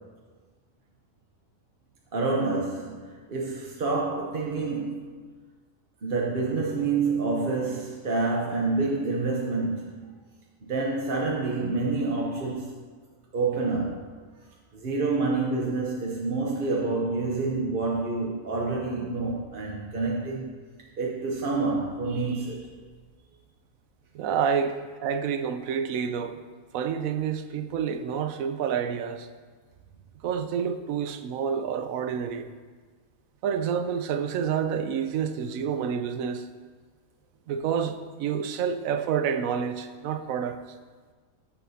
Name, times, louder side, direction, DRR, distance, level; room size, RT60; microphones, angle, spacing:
voice 1, 2.1-5.0 6.0-10.1 10.6-12.7 13.3-14.0 14.7-20.5 21.0-22.7, right 3 dB, 45° right, 0.9 m, -28 dB
voice 2, 24.1-24.7 25.0-26.4 26.7-29.3 30.2-32.5 33.4-36.5 37.5-40.6, right 7 dB, 80° right, 1.0 m, -28 dB
14.0 x 6.0 x 2.8 m
omnidirectional pair, 1.4 m